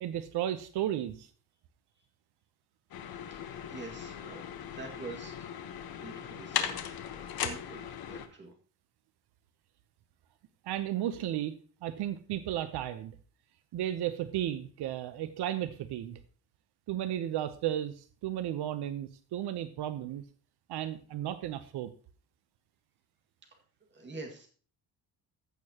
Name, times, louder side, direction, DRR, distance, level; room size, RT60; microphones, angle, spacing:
voice 1, 0.0-1.3 10.6-11.6 11.8-13.1 13.7-16.2 16.9-20.2 20.7-21.9, right 12 dB, 85° right, 12 dB, 0.8 m, -34 dB
sound 1, 2.9-8.3, left 9 dB, 65° left, 1.2 m, -38 dB
voice 2, 3.7-5.5 5.9-7.8 8.1-8.5 23.9-24.5, right 3 dB, 30° right, 2 dB, 2.1 m, -46 dB
15.0 x 6.7 x 2.9 m, 0.41 s
cardioid pair, 175°, 39 cm